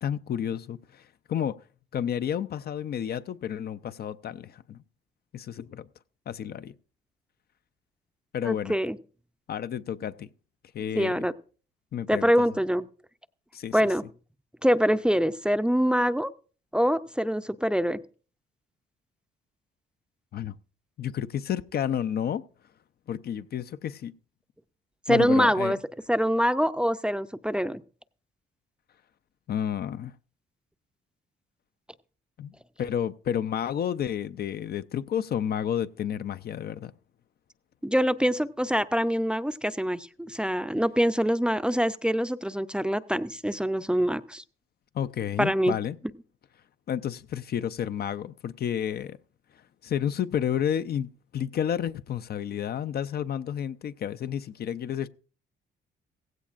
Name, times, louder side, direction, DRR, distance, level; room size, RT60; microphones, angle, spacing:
voice 1, 0.0-1.6 1.9-4.8 5.3-5.9 6.3-6.7 8.3-8.8 9.5-10.3 10.7-11.3 11.9-12.3 13.5-13.9 20.3-20.5 21.0-22.4 23.1-24.1 25.1-25.7 29.5-30.1 32.4-32.5 32.8-36.9 44.9-46.0 46.9-49.2 49.5-55.1, left 9 dB, 50° left, 0.5 m, -31 dB
voice 2, 8.4-9.0 11.0-11.3 12.1-12.9 13.7-14.0 14.6-16.3 16.7-18.0 25.1-25.8 26.1-27.8 37.8-44.4 45.4-45.8, equal, 5° right, 0.5 m, -24 dB
16.0 x 16.0 x 2.5 m
cardioid pair, 90°, 20 cm